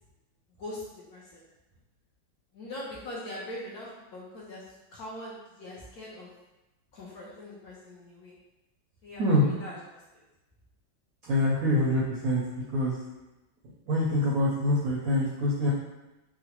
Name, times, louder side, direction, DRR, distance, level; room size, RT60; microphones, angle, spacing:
voice 1, 0.6-1.4 2.5-6.3 6.9-8.3 9.0-10.2, left 1 dB, 65° left, -6 dB, 1.0 m, -42 dB
voice 2, 11.3-12.4 12.7-13.0 13.8-15.7, left 1 dB, 75° right, -6 dB, 0.8 m, -25 dB
3.7 x 2.1 x 2.9 m, 1.0 s
omnidirectional pair, 2.0 m